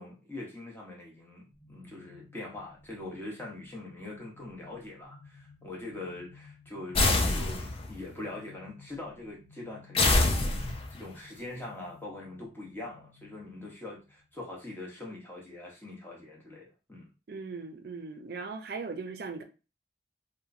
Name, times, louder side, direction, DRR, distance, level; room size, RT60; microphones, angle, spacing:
voice 1, 0.0-10.2 10.9-17.1, left 2 dB, 10° left, 0.7 m, -43 dB
sound 1, 1.5-14.6, left 4 dB, 50° left, 1.0 m, -56 dB
sound 2, 6.9-8.0 9.9-11.0, left 2 dB, 30° left, 0.3 m, -25 dB
voice 2, 17.3-19.4, right 4 dB, 55° right, 0.4 m, -38 dB
2.9 x 2.1 x 2.4 m
head